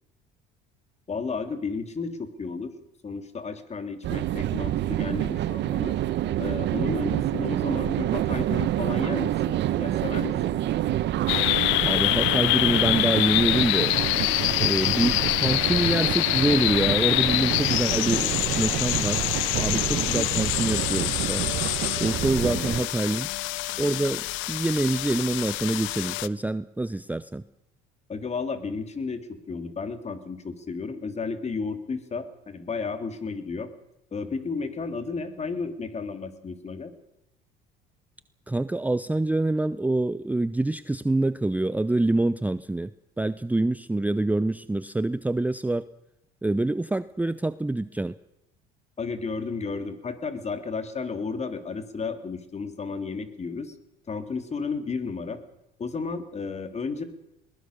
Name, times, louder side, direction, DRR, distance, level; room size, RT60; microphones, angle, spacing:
voice 1, 1.1-2.7 3.0-6.0 6.4-10.5 22.4-22.8 28.1-33.7 34.1-36.9 49.0-53.7 54.1-55.4 55.8-57.0, left 4 dB, 35° left, 9 dB, 3.2 m, -33 dB
sound 1, 4.0-22.8, right 13 dB, 60° right, 1.3 m, -28 dB
sound 2, 11.3-26.3, left 19 dB, 75° left, 0.8 m, -26 dB
voice 2, 11.8-14.0 14.6-19.2 19.6-21.4 22.0-23.3 23.8-27.4 38.5-42.9 43.2-45.8 46.4-48.1, right 2 dB, 10° right, 15 dB, 0.7 m, -26 dB
21.5 x 20.0 x 6.7 m, 0.85 s
supercardioid pair, 80°, 20 cm